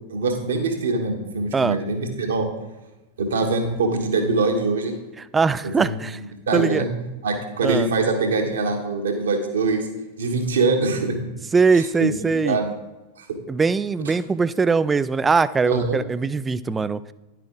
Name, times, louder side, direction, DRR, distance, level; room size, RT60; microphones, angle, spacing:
voice 1, 0.1-2.5 3.2-4.9 5.6-5.9 6.5-6.9 7.2-9.9 10.2-11.1 11.7-12.1 12.4-12.7 13.2-13.3 15.6-16.0, right 3 dB, 65° right, 4 dB, 1.4 m, -23 dB
voice 2, 5.2-6.2 6.5-6.9 7.6-7.9 11.5-12.6 13.5-17.0, right 4 dB, 15° right, 16 dB, 0.3 m, -21 dB
10.5 x 7.6 x 3.8 m, 1.0 s
figure-of-eight pair, 90°, 0 cm